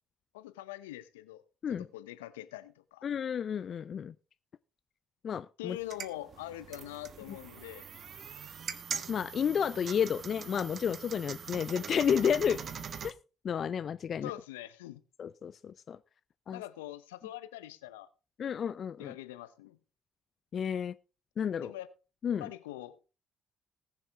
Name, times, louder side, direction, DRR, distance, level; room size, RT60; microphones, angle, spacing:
voice 1, 0.3-1.4 1.7-3.1 5.6-7.9 14.2-15.0 16.5-18.1 19.0-19.8 21.6-21.9 22.4-23.1, left 14 dB, 80° left, 0.8 m, -43 dB
voice 2, 3.0-4.1 5.2-5.8 9.1-12.6 13.0-13.1 13.4-14.3 15.2-16.0 16.5-16.6 18.4-19.1 20.5-21.0 21.4-21.7 22.2-22.5, left 8 dB, 50° left, 0.5 m, -31 dB
sound 1, 5.7-13.1, right 7 dB, 50° right, 1.1 m, -42 dB
20.0 x 7.2 x 3.5 m
hypercardioid pair, 45°, 0 cm